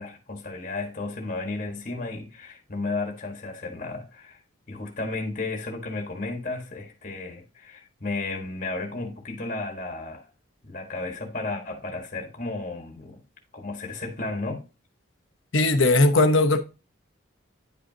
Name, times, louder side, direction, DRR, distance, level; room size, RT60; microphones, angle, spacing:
voice 1, 0.0-4.4 4.7-10.2 10.6-13.2 13.5-14.6, left 3 dB, 40° left, 1.4 m, -33 dB
voice 2, 15.5-16.6, left 2 dB, 70° left, 0.9 m, -18 dB
10.0 x 5.2 x 2.8 m
head